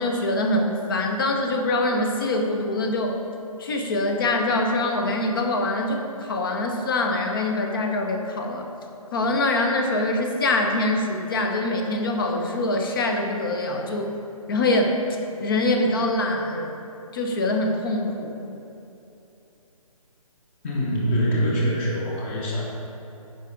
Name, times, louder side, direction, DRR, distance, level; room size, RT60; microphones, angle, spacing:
voice 1, 0.0-3.2 3.6-8.7 9.1-14.1 14.5-15.0 15.4-16.7 17.1-18.4, left 2 dB, 35° left, 3 dB, 0.8 m, -24 dB
voice 2, 20.6-22.6, equal, 20° left, -3 dB, 1.1 m, -24 dB
9.2 x 5.2 x 3.8 m, 2.9 s
figure-of-eight pair, 140°, 19 cm